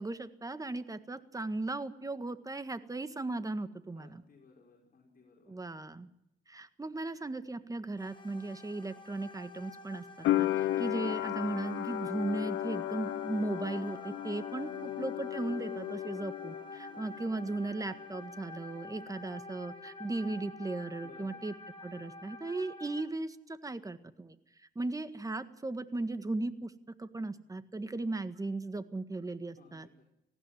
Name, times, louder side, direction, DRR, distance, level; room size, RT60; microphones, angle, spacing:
voice 1, 0.0-4.2 5.5-6.1 6.5-10.5 10.8-21.5 21.8-24.4 24.7-26.7 27.0-29.9, right 2 dB, 15° right, 11 dB, 1.7 m, -37 dB
voice 2, 3.9-5.6 10.5-10.8 14.8-15.2 16.9-17.1 21.0-21.4 29.5-30.0, left 4 dB, 45° left, -1 dB, 5.3 m, -58 dB
sound 1, 8.0-23.0, left 2 dB, 25° left, 4.5 m, -48 dB
sound 2, 10.2-17.1 17.3-18.2, left 14 dB, 80° left, 0.7 m, -35 dB
19.0 x 15.5 x 9.3 m, 0.81 s
cardioid pair, 90°, 20 cm